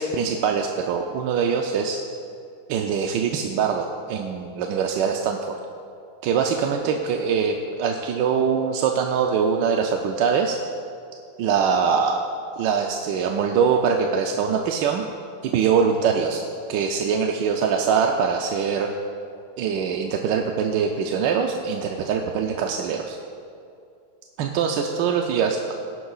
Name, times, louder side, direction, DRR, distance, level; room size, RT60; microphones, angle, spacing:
voice 1, 0.0-2.0 2.7-5.6 6.2-10.6 11.4-12.2 12.6-15.0 15.4-18.9 19.6-23.2 24.4-25.7, right 6 dB, 90° right, 2 dB, 1.3 m, -23 dB
17.5 x 10.0 x 2.4 m, 2.5 s
omnidirectional pair, 1.9 m